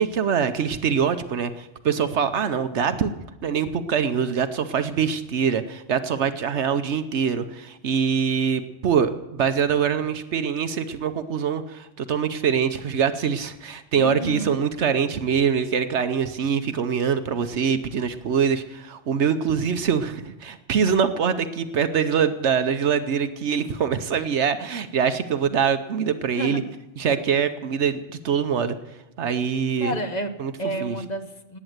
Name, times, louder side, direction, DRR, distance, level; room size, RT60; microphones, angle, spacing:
voice 1, 0.0-3.1 3.4-26.6 27.0-28.8 29.2-30.0 30.4-30.5 30.8-31.0, right 7 dB, 70° right, 10 dB, 1.1 m, -24 dB
voice 2, 13.9-14.6 26.4-26.6 29.8-30.3 30.6-31.6, right 1 dB, 35° left, 7 dB, 1.3 m, -30 dB
18.5 x 9.1 x 7.9 m, 0.98 s
omnidirectional pair, 1.2 m